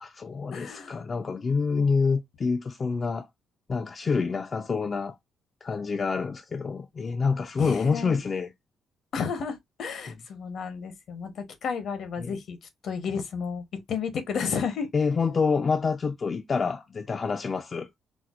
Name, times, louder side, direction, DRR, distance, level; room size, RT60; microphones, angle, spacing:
voice 1, 0.0-3.3 3.7-5.2 5.6-8.5 10.1-10.2 12.2-12.4 14.9-17.9, left 5 dB, 40° left, 0.4 m, -27 dB
voice 2, 0.5-1.0 7.6-8.2 9.1-12.6 12.8-14.9, left 6 dB, 65° left, 0.8 m, -32 dB
4.3 x 2.0 x 2.3 m
cardioid pair, 90°, 0 cm